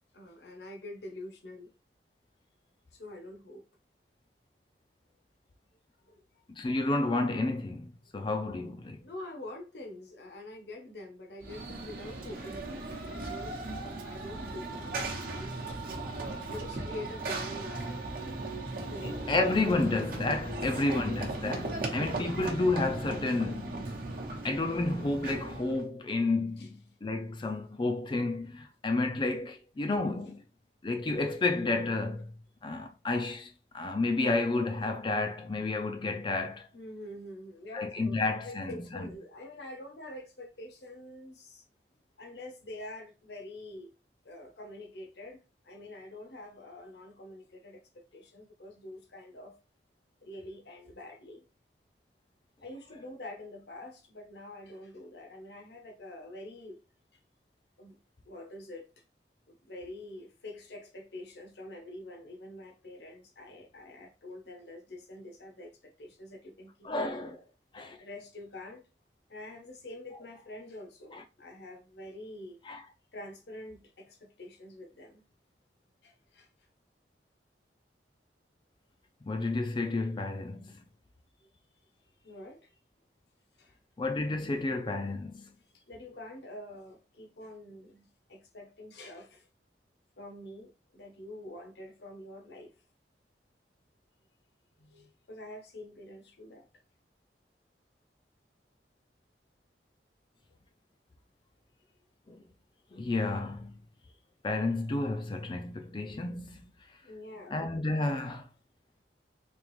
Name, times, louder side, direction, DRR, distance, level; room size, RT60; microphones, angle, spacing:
voice 1, 0.1-1.7 2.9-3.7 6.0-6.2 9.0-13.7 14.0-15.8 16.5-18.0 18.8-19.3 26.6-26.7 30.2-30.3 36.7-38.2 38.4-41.6 42.2-43.9 44.2-49.5 50.2-51.4 52.6-56.8 57.8-58.0 58.3-58.9 59.5-66.9 67.2-67.3 68.0-68.8 69.3-72.6 73.1-75.2 76.0-76.5 81.4-81.5 82.2-82.7 83.6-83.8 85.9-89.5 90.2-92.7 94.8-96.7 107.0-107.6, left 1 dB, 70° left, 0.9 m, -46 dB
voice 2, 6.5-9.1 19.0-23.8 24.4-30.4 30.8-32.3 32.6-36.7 37.7-39.1 66.8-67.4 67.7-68.0 71.1-71.2 72.7-72.8 79.2-80.8 84.0-85.5 102.3-102.4 102.9-103.8 104.4-106.7 107.5-108.5, left 2 dB, 30° left, 0.4 m, -31 dB
Run / Train, 11.4-25.8, right 2 dB, 55° right, 0.9 m, -37 dB
3.5 x 2.9 x 3.1 m
head